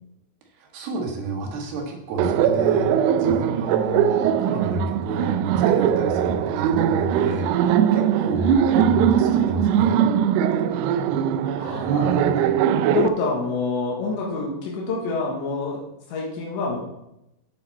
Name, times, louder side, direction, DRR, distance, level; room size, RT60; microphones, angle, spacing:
voice 1, 0.6-7.5 7.9-10.1, right 2 dB, 65° right, 1 dB, 3.4 m, -29 dB
Laughter, 2.2-13.1, right 9 dB, 85° right, 2.5 m, -21 dB
voice 2, 8.8-9.1 11.6-12.5 12.9-15.8 16.1-16.8, left 3 dB, 80° left, -2 dB, 3.7 m, -27 dB
9.8 x 9.3 x 4.1 m, 0.89 s
omnidirectional pair, 5.0 m